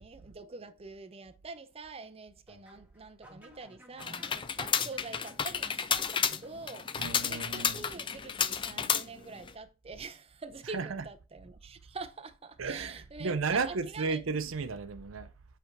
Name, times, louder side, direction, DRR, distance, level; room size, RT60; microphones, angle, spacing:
voice 1, 0.0-14.2, right 4 dB, 30° right, 0.6 m, -46 dB
sound 1, 2.5-8.4, right 1 dB, 10° right, 1.7 m, -56 dB
sound 2, 4.0-9.5, left 7 dB, 25° left, 0.4 m, -31 dB
voice 2, 7.0-7.9 10.7-11.0 12.6-15.3, right 4 dB, 90° right, 0.6 m, -33 dB
7.9 x 3.4 x 4.7 m
head